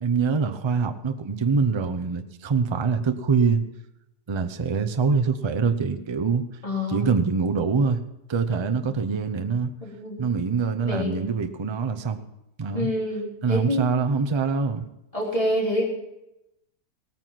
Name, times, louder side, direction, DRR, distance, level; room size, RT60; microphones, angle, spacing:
voice 1, 0.0-3.6 4.3-6.5 6.9-8.0 8.3-9.7 10.2-12.3 12.6-12.9 13.4-14.9, right 5 dB, 35° right, 7 dB, 0.4 m, -24 dB
voice 2, 6.6-7.1 8.8-8.9 9.8-10.2 10.8-11.2 12.7-13.9 15.1-15.8, left 1 dB, 20° left, -3 dB, 3.7 m, -27 dB
17.5 x 9.3 x 5.9 m, 0.90 s
omnidirectional pair, 1.7 m